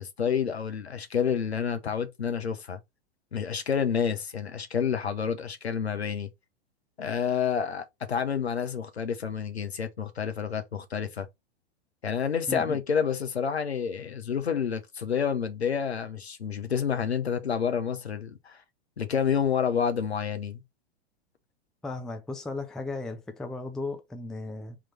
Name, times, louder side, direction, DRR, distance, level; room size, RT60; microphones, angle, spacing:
voice 1, 0.0-2.8 3.3-6.3 7.0-11.3 12.0-18.6 19.0-20.6, left 7 dB, 75° left, 0.9 m, -29 dB
voice 2, 12.5-12.8 21.8-24.8, left 3 dB, ahead, 0.4 m, -36 dB
3.8 x 3.1 x 4.3 m
figure-of-eight pair, 100°, 32 cm